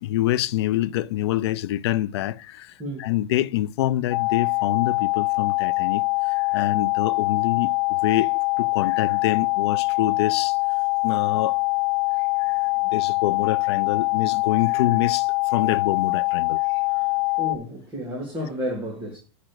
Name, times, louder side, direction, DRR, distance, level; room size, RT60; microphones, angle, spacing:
voice 1, 0.0-2.7 3.0-7.7 8.0-8.3 8.6-10.6 11.0-11.6 12.4-12.6 12.9-16.6, left 14 dB, 60° left, 0.5 m, -26 dB
voice 2, 2.8-3.1 17.4-19.2, equal, 15° right, 2.0 m, -31 dB
sound 1, 4.1-17.6, left 24 dB, 90° left, 0.8 m, -23 dB
8.7 x 5.1 x 6.2 m
supercardioid pair, 175°, 15 cm